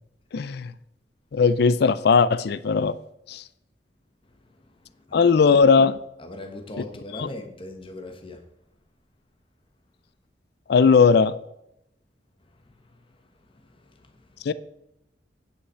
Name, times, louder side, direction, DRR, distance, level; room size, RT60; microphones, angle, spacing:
voice 1, 0.3-0.7 1.3-3.0 3.3-3.4 5.1-6.0 6.8-6.9 7.1-7.3 10.7-11.3 14.5-14.6, left 5 dB, 65° left, 0.4 m, -18 dB
voice 2, 6.2-8.4, left 1 dB, 30° left, 1.2 m, -38 dB
9.7 x 5.9 x 5.6 m
head